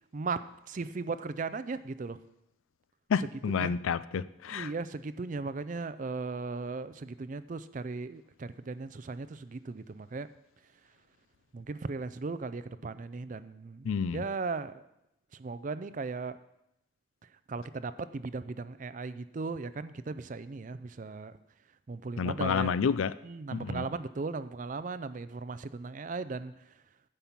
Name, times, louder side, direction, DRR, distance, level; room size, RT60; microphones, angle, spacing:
voice 1, 0.7-2.2 3.6-3.7 4.5-10.3 11.5-13.9 14.1-14.8 15.3-16.4 17.5-21.3 21.9-22.7 23.2-26.5, right 4 dB, 40° right, 14 dB, 0.4 m, -37 dB
voice 2, 3.1-4.7 13.8-14.3 22.2-23.1 23.5-23.9, left 6 dB, 80° left, 17 dB, 0.4 m, -30 dB
10.0 x 5.4 x 7.3 m, 0.85 s
head